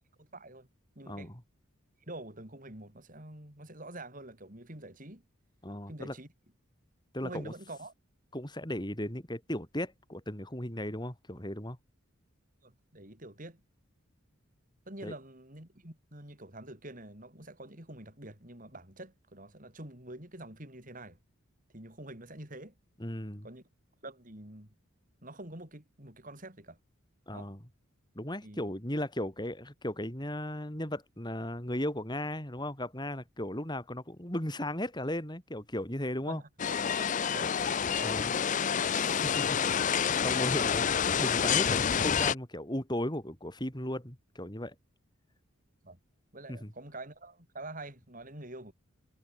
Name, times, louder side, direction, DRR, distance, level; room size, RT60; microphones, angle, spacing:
voice 1, 0.2-0.7 1.0-1.3 2.0-5.2 5.9-6.3 7.2-7.9 12.6-13.6 14.9-21.2 21.7-22.8 23.4-23.7 24.0-24.7 25.2-26.8 27.3-27.5 28.4-28.7 36.3-36.8 37.2-37.5 38.0-38.1 45.8-46.0 46.3-48.7, right 1 dB, 40° right, 5.6 m, -46 dB
voice 2, 1.1-1.4 5.6-6.1 7.1-7.5 8.3-11.8 15.0-15.1 23.0-23.5 27.3-27.6 28.2-36.4 38.0-38.3 38.6-44.7 46.5-46.7, left 1 dB, 20° left, 4.2 m, -36 dB
sound 1, 36.6-42.3, left 7 dB, 35° left, 0.5 m, -28 dB
head